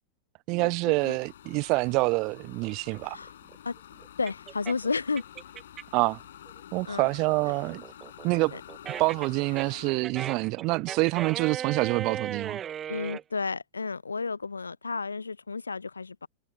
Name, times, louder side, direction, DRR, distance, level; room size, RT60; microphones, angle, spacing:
voice 1, 0.5-3.2 5.9-6.2 6.7-7.8 8.2-8.5 9.0-12.6, right 26 dB, 40° right, 0.9 m, -26 dB
sound 1, 1.0-9.9, left 11 dB, 60° left, 7.3 m, -49 dB
sound 2, 2.6-6.1 6.5-13.2, right 9 dB, 25° right, 2.0 m, -37 dB
voice 2, 4.2-5.2 6.8-7.1 8.5-8.6 12.9-16.3, left 4 dB, 75° left, 0.8 m, -32 dB
figure-of-eight pair, 90°, 0 cm